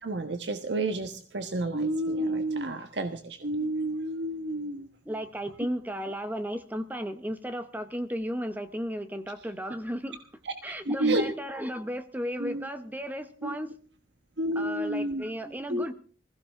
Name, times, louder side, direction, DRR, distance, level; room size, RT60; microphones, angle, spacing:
voice 1, 0.0-4.9 10.4-10.5 10.9-11.2 12.4-12.7 13.4-13.6 14.4-15.2 15.7-15.8, right 1 dB, 80° right, 7 dB, 1.3 m, -30 dB
voice 2, 5.0-10.3 10.6-13.7 14.5-15.9, equal, 10° right, 10 dB, 0.8 m, -34 dB
20.5 x 16.0 x 3.6 m, 0.41 s
head